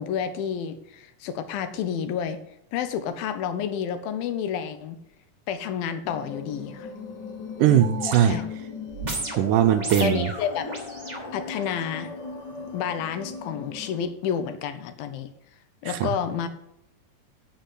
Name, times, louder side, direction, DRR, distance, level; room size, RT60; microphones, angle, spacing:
voice 1, 0.0-2.4 2.7-5.0 5.5-6.9 8.2-8.4 10.0-10.7 11.3-12.1 12.7-15.3 15.8-16.5, left 8 dB, 90° left, 10 dB, 2.8 m, -30 dB
sound 1, 6.0-14.0, left 5 dB, 70° left, 1.0 m, -38 dB
voice 2, 7.6-8.4 9.4-10.3 15.9-16.1, right 10 dB, 80° right, 8 dB, 2.0 m, -20 dB
sound 2, 7.8-11.9 12.6-12.7, right 2 dB, 45° right, 0.5 m, -35 dB
8.3 x 6.2 x 8.2 m, 0.77 s
omnidirectional pair, 4.1 m